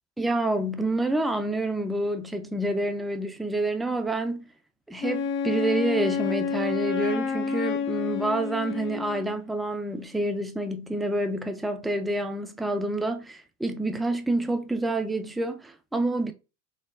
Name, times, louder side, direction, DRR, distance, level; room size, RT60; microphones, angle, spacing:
voice 1, 0.2-4.5 4.9-16.3, right 1 dB, ahead, 0.3 m, -28 dB
Wind instrument woodwind instrument, 5.0-9.4, left 5 dB, 25° left, 0.8 m, -29 dB
4.1 x 2.9 x 3.6 m
hypercardioid pair, 80°, 46 cm